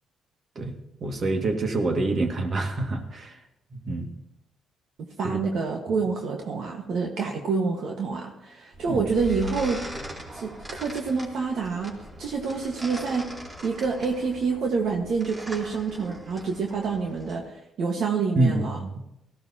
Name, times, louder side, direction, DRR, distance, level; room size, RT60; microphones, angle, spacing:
voice 1, 1.0-3.4 3.7-4.1 5.2-5.4 8.9-9.0 18.4-19.0, right 2 dB, 45° right, 3 dB, 2.0 m, -26 dB
voice 2, 5.0-13.3 13.6-18.8, right 4 dB, 70° right, 1 dB, 1.5 m, -28 dB
sound 1, 8.7-17.4, equal, 30° right, 3.3 m, -40 dB
18.0 x 14.5 x 2.9 m, 0.86 s
cardioid pair, 90°, 0 cm